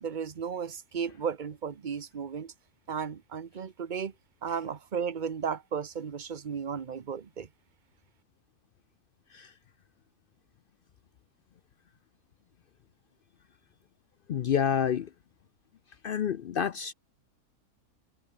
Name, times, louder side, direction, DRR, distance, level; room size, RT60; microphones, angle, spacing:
voice 1, 0.0-2.5 2.9-4.1 4.4-7.5, right 7 dB, 35° right, 0.9 m, -34 dB
voice 2, 14.3-15.1 16.0-16.9, left 8 dB, 70° left, 0.5 m, -28 dB
omnidirectional pair, 1.6 m